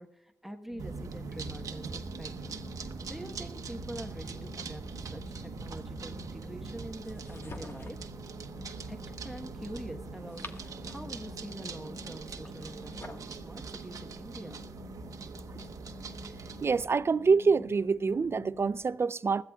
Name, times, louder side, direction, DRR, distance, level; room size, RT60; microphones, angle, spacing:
voice 1, 0.0-8.0 8.9-9.0 9.2-14.6, right 1 dB, 5° right, 1.2 m, -45 dB
sound 1, 0.7-18.8, left 7 dB, 80° left, 4.2 m, -51 dB
sound 2, 0.8-16.9, right 4 dB, 70° right, 1.0 m, -42 dB
sound 3, 7.0-8.1 10.0-11.2 12.4-13.3, left 3 dB, 40° left, 1.5 m, -48 dB
voice 2, 16.6-19.4, right 5 dB, 45° right, 0.5 m, -26 dB
20.5 x 14.0 x 2.3 m
cardioid pair, 55°, 6 cm